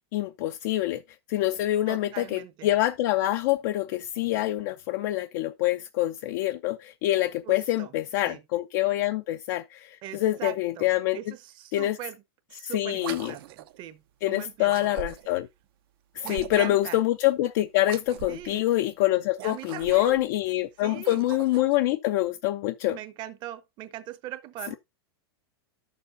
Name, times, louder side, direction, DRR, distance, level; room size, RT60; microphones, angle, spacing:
voice 1, 0.1-1.0 1.3-11.2 11.7-12.0 12.6-13.3 14.2-15.5 16.1-23.0, left 15 dB, 50° left, 0.5 m, -26 dB
voice 2, 1.9-2.7 7.4-7.9 8.2-8.4 10.0-10.9 11.1-12.2 12.5-14.0 14.3-14.9 16.2-17.0 18.3-18.6 19.4-20.3 20.8-21.3 21.6-21.7 22.9-24.8, right 13 dB, 35° right, 0.9 m, -40 dB
sound 1, 12.9-13.8 14.6-15.4 16.2-16.9 17.8-18.5 19.3-20.2 20.9-21.8, right 13 dB, 60° right, 0.7 m, -41 dB
12.0 x 6.9 x 2.6 m
supercardioid pair, 145°, 13 cm